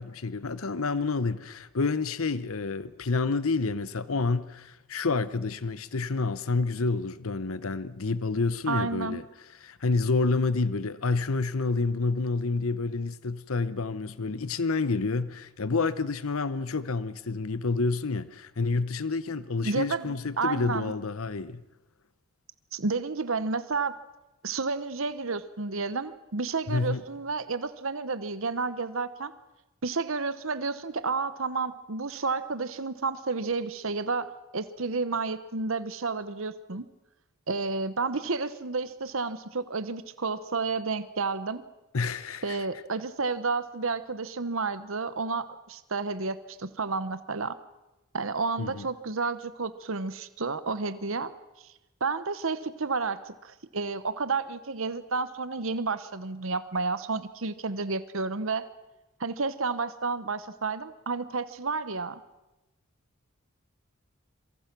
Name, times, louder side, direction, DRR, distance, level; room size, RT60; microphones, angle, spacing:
voice 1, 0.0-9.2 9.6-21.6 26.7-27.0 41.9-42.6 48.6-48.9, left 3 dB, 75° left, 0.9 m, -29 dB
voice 2, 8.7-9.2 19.6-20.9 22.7-23.9 24.4-29.3 29.8-36.9 37.5-41.6 42.4-47.5 48.1-51.3 51.6-51.7 52.0-58.7 59.2-62.2, right 4 dB, 70° right, 1.0 m, -31 dB
26.5 x 23.5 x 6.1 m
head